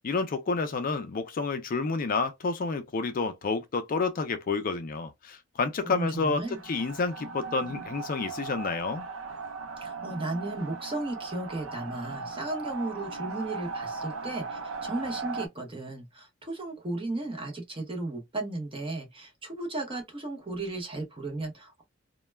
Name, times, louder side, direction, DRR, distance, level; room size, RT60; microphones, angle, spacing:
voice 1, 0.0-9.1, left 4 dB, 45° left, 0.4 m, -29 dB
voice 2, 5.8-6.6 9.8-21.8, right 2 dB, 25° right, 0.8 m, -35 dB
sound 1, 6.4-15.5, right 4 dB, 80° right, 0.5 m, -38 dB
2.2 x 2.1 x 3.2 m
head